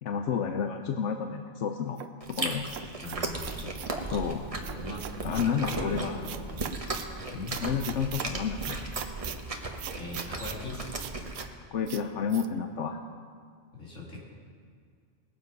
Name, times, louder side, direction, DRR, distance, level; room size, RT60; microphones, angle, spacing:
voice 1, 0.0-2.0 2.3-2.6 4.1-4.5 5.2-6.2 7.6-8.8 11.7-13.0, left 7 dB, 70° left, 5 dB, 1.0 m, -30 dB
sound 1, 2.0-4.0 4.6-5.8 6.2-7.1 7.5-8.3 8.6-9.4 9.8-10.6 11.0-11.5 11.9-12.0 12.3-12.5, right 10 dB, 90° right, 1.0 m, -40 dB
Chewing mastication, 2.2-11.4, right 2 dB, 30° right, 1.1 m, -36 dB
voice 2, 3.0-3.8 4.6-6.6 7.3-7.6 9.9-10.8 13.7-14.2, left 2 dB, 90° left, -4 dB, 3.2 m, -40 dB
20.0 x 7.5 x 5.3 m, 2.1 s
omnidirectional pair, 1.3 m